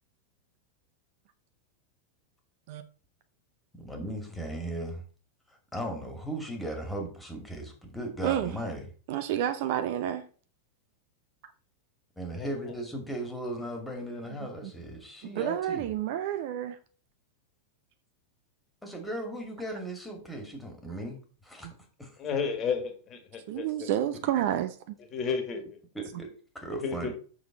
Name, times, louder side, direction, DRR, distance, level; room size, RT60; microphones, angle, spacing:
voice 1, 3.8-5.0 5.7-8.9 12.2-15.9 18.8-21.7 22.0-22.1 25.9-27.1, right 1 dB, 5° left, 2.2 m, -37 dB
voice 2, 9.1-10.2 14.4-14.7 15.2-16.8 23.5-25.0, right 11 dB, 50° right, 0.7 m, -30 dB
voice 3, 22.2-23.9 25.1-25.8 26.8-27.1, left 5 dB, 30° left, 1.7 m, -32 dB
7.1 x 6.3 x 3.9 m
figure-of-eight pair, 90°, 0 cm